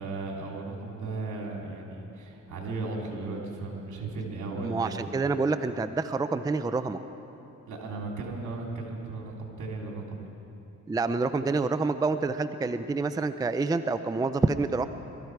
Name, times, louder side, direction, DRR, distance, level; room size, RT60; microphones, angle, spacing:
voice 1, 0.0-5.0 7.7-10.3, right 3 dB, 75° right, -1 dB, 3.1 m, -36 dB
voice 2, 4.6-7.0 10.9-14.9, right 3 dB, 15° right, 10 dB, 0.4 m, -27 dB
21.5 x 13.5 x 4.7 m, 2.9 s
cardioid pair, 90°, 30 cm